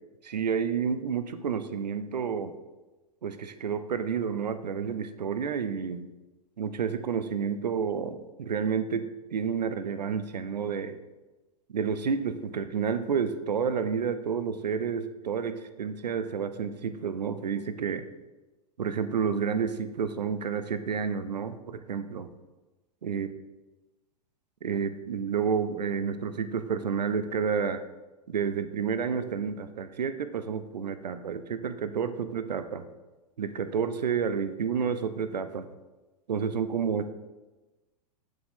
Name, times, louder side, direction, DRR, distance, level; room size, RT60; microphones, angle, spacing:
voice 1, 0.2-2.5 3.2-6.1 6.6-11.0 11.7-18.1 18.8-22.3 23.0-23.3 24.6-27.8 28.3-32.9 33.4-35.7 36.3-37.1, right 6 dB, 85° right, 11 dB, 0.5 m, -30 dB
6.1 x 6.1 x 3.6 m, 1.1 s
hypercardioid pair, 100°, 21 cm